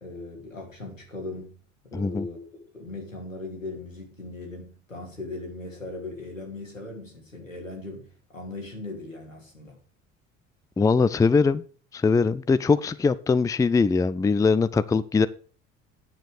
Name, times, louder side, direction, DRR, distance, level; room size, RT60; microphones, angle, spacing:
voice 1, 0.0-1.5 1.8-2.4 2.7-9.8, left 2 dB, 90° left, 0 dB, 2.9 m, -38 dB
voice 2, 1.9-2.3 10.8-11.6 11.9-15.3, left 4 dB, 10° left, 16 dB, 0.5 m, -21 dB
9.4 x 7.7 x 6.6 m, 0.41 s
figure-of-eight pair, 60°, 38 cm